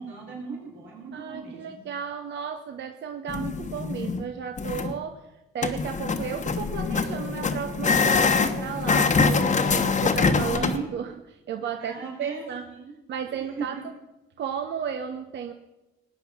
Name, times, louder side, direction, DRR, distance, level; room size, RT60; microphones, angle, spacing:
voice 1, 0.0-1.8 10.0-10.9 11.8-13.0 13.3-13.8, right 5 dB, 80° right, -3 dB, 4.8 m, -39 dB
voice 2, 1.1-5.2 5.5-12.7 13.1-13.8 14.4-15.5, right 7 dB, 65° right, 6 dB, 1.0 m, -34 dB
sound 1, 3.3-4.2 4.6-4.9 5.6-10.8, left 4 dB, 40° left, 1.2 m, -24 dB
19.0 x 9.3 x 5.9 m, 1.0 s
cardioid pair, 90°, 20 cm